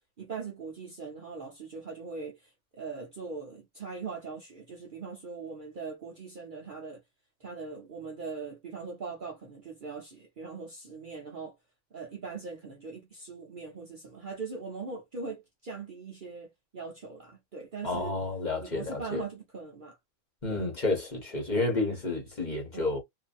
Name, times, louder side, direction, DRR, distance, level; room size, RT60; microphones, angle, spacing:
voice 1, 0.2-7.0 7.4-11.6 11.9-18.2 18.6-20.0 20.5-20.7 22.7-23.0, right 4 dB, 45° right, 0.8 m, -41 dB
voice 2, 17.8-19.2 20.4-23.0, left 2 dB, 35° left, 1.3 m, -30 dB
2.7 x 2.7 x 2.5 m
omnidirectional pair, 1.4 m